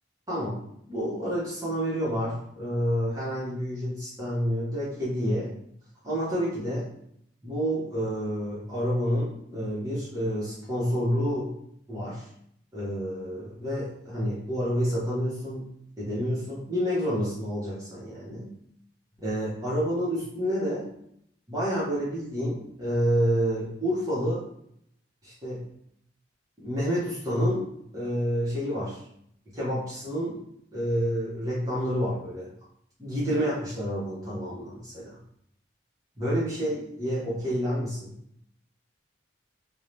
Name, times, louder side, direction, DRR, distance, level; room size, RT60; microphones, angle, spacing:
voice 1, 0.3-5.5 6.0-6.9 7.4-11.5 11.9-12.3 12.7-15.7 16.0-18.5 19.2-20.9 21.5-24.4 25.2-25.7 26.6-29.1 29.5-30.4 30.7-32.5 33.0-35.2 36.2-38.1, equal, 20° right, -9 dB, 0.7 m, -29 dB
2.6 x 2.0 x 3.1 m, 0.71 s
head